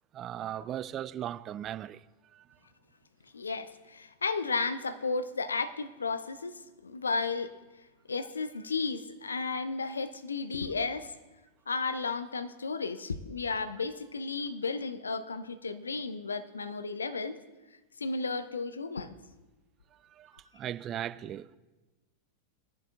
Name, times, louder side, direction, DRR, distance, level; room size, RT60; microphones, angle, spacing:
voice 1, 0.1-2.0 2.3-2.5 19.9-21.6, right 11 dB, 30° right, 0.3 m, -38 dB
voice 2, 3.3-7.5 8.1-11.1 11.7-17.4 18.0-19.1, left 4 dB, 75° left, 0.6 m, -33 dB
20.5 x 10.5 x 2.5 m
figure-of-eight pair, 90°, 0 cm